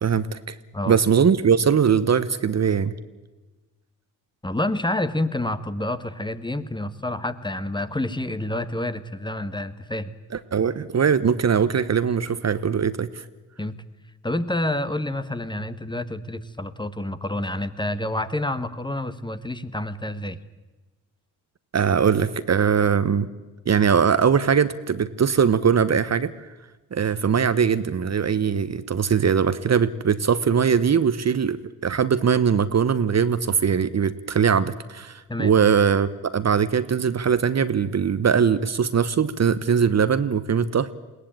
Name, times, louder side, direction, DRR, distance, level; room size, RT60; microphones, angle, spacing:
voice 1, 0.0-0.6 0.9-2.9 10.3-13.2 21.7-23.3 23.7-26.5 26.9-40.9, right 7 dB, 40° right, 14 dB, 1.1 m, -21 dB
voice 2, 4.4-10.1 13.6-13.8 14.2-20.4 35.3-35.5, left 1 dB, 10° left, 12 dB, 1.4 m, -28 dB
21.5 x 17.0 x 8.9 m, 1.2 s
supercardioid pair, 50°, 40 cm